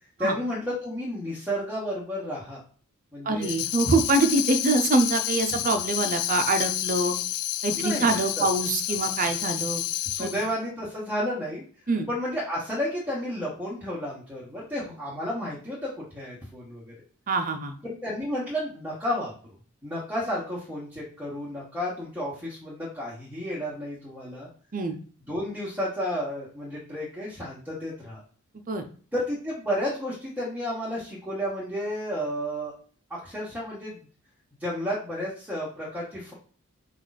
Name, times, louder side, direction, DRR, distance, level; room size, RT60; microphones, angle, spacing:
voice 1, 0.2-2.6 3.1-3.5 7.8-8.4 10.0-11.6 12.1-16.9 17.8-19.3 19.8-24.5 25.3-28.2 29.1-32.7 33.1-34.0 34.6-36.3, equal, 5° right, -8 dB, 1.2 m, -32 dB
voice 2, 3.3-7.1 7.6-9.8 10.2-10.3 11.9-12.1 17.3-17.8 24.7-24.9 28.7-28.8, right 2 dB, 40° right, 7 dB, 0.6 m, -24 dB
Tambourine, 3.4-10.5, left 14 dB, 75° left, 0.3 m, -30 dB
4.9 x 2.4 x 4.0 m, 0.42 s
head